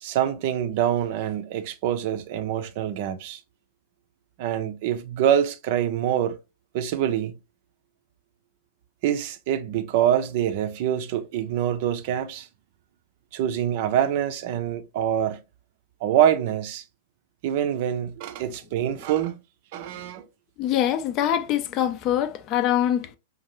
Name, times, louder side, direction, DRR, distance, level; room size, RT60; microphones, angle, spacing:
voice 1, 0.0-3.4 4.4-6.4 6.7-7.3 9.0-12.5 13.3-15.4 16.0-16.8 17.4-19.4 19.7-20.3, right 10 dB, 50° right, 0.5 m, -25 dB
voice 2, 20.6-23.2, left 11 dB, 40° left, 0.4 m, -24 dB
5.2 x 2.4 x 2.9 m
figure-of-eight pair, 95°, 0 cm